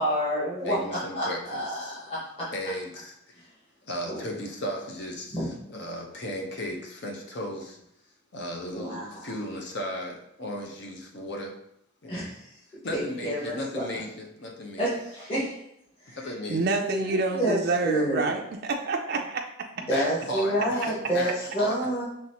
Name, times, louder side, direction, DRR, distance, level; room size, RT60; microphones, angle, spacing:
voice 1, 0.0-2.2 4.1-4.2 5.3-5.5 8.7-9.0 12.1-12.4 12.9-13.8 14.8-15.5 16.1-16.2 16.8-18.2 19.9-22.0, equal, 25° left, -9 dB, 1.6 m, -28 dB
voice 2, 0.6-2.0 2.5-3.5 3.8-7.8 8.3-11.5 12.0-12.3 12.8-14.9 16.2-16.6 19.9-21.7, equal, 50° left, 1 dB, 0.8 m, -36 dB
voice 3, 16.5-19.4, right 3 dB, 45° right, 1 dB, 0.4 m, -27 dB
5.8 x 3.2 x 2.9 m, 0.78 s
head